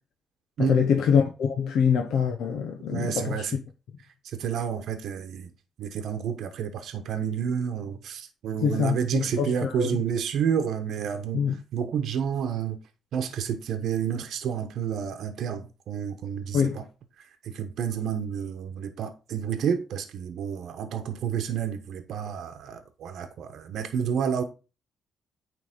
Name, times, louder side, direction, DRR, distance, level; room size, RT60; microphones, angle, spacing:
voice 1, 0.6-3.6 8.6-10.0 11.3-11.6 16.5-16.8, left 7 dB, 75° left, 1.0 m, -25 dB
voice 2, 2.9-3.6 4.3-5.5 5.8-11.4 11.7-12.8 13.1-16.8 17.4-24.4, right 8 dB, 75° right, 1.0 m, -30 dB
9.4 x 3.4 x 5.0 m
cardioid pair, 90°, 0 cm